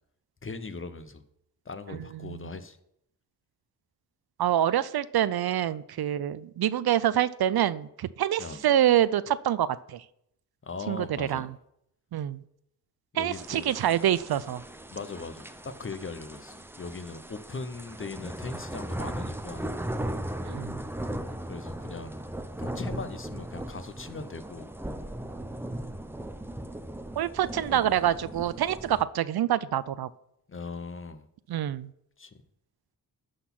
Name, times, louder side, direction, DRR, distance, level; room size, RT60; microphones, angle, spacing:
voice 1, 0.4-1.2 1.7-2.8 8.4-8.6 10.6-11.5 13.1-13.8 14.9-19.7 21.5-22.2 22.6-24.7 27.4-27.8 30.5-31.3 32.2-32.3, left 4 dB, 30° left, 11 dB, 0.7 m, -39 dB
voice 2, 4.4-10.0 10.9-11.5 12.1-12.4 13.2-14.6 20.5-20.8 27.2-30.1 31.5-31.9, right 11 dB, 70° right, 17 dB, 0.5 m, -26 dB
sound 1, 13.3-29.0, right 1 dB, 5° right, 0.5 m, -38 dB
11.5 x 4.1 x 6.0 m, 0.75 s
wide cardioid pair, 90°, 39 cm